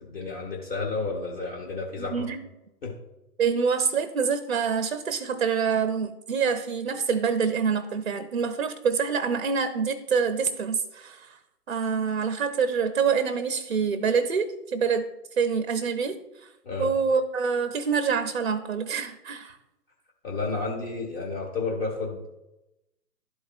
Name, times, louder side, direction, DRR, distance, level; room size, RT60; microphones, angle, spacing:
voice 1, 0.1-2.3 2.8-2.9 16.6-16.9 20.2-22.3, left 3 dB, 35° left, -1 dB, 1.2 m, -31 dB
voice 2, 2.0-2.4 3.4-11.4 11.7-15.1 15.4-16.5 16.8-19.6, right 6 dB, 45° right, 9 dB, 0.4 m, -26 dB
12.0 x 4.7 x 2.4 m, 0.93 s
figure-of-eight pair, 140°, 50 cm